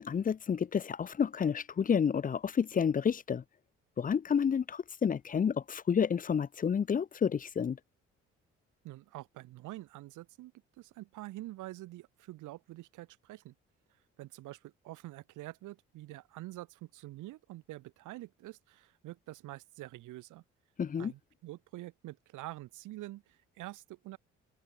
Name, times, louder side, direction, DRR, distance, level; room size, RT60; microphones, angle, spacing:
voice 1, 0.0-3.4 4.0-7.8 20.8-21.1, left 7 dB, 30° left, 0.5 m, -30 dB
voice 2, 8.8-10.5 10.8-13.5 14.2-20.4 21.0-24.2, right 17 dB, 80° right, 1.6 m, -46 dB
open air
supercardioid pair, 55°, 30 cm